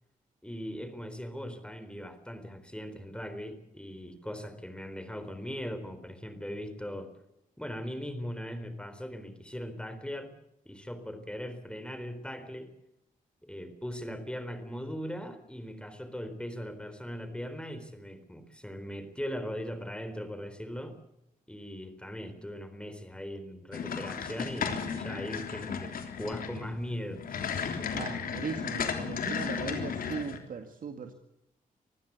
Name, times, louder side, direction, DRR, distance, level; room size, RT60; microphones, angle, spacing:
voice 1, 0.4-7.1 7.6-10.3 10.7-12.7 13.4-20.9 21.5-25.9 26.2-27.4, equal, 5° left, 10 dB, 4.0 m, -39 dB
sound 1, 23.7-30.4, left 6 dB, 75° left, 3.4 m, -34 dB
voice 2, 27.9-31.1, right 6 dB, 65° right, 6 dB, 2.0 m, -38 dB
25.0 x 15.5 x 8.2 m, 0.87 s
cardioid pair, 80°, 15 cm